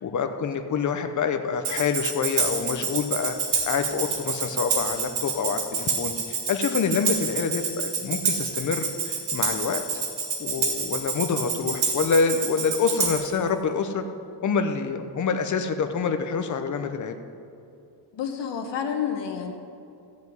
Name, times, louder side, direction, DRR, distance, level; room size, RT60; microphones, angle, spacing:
voice 1, 0.0-3.3 3.6-9.8 10.4-14.0 14.4-17.2, left 5 dB, 45° left, 7 dB, 0.9 m, -26 dB
Tambourine, 1.6-13.4, right 5 dB, 80° right, 2.5 m, -28 dB
voice 2, 18.1-19.5, left 7 dB, 80° left, 4 dB, 1.5 m, -29 dB
14.5 x 5.3 x 9.5 m, 2.5 s
cardioid pair, 145°, 42 cm